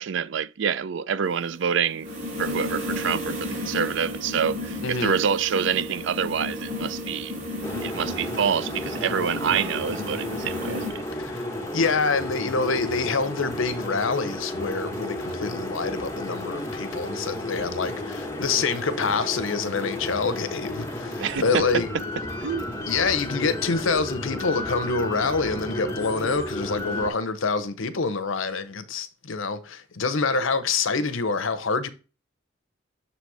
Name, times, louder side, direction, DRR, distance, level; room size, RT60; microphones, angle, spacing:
voice 1, 0.0-2.1 2.4-7.3 7.8-11.0 21.2-21.7 22.4-22.7, right 7 dB, 60° right, 0.4 m, -27 dB
sound 1, 1.3-10.9, left 1 dB, 35° right, 2.8 m, -33 dB
voice 2, 4.8-5.2 11.2-11.4 11.7-21.9 22.9-31.9, left 4 dB, 70° left, 0.8 m, -26 dB
sound 2, 7.6-27.1, left 1 dB, 15° left, 1.3 m, -33 dB
6.9 x 4.1 x 4.7 m
head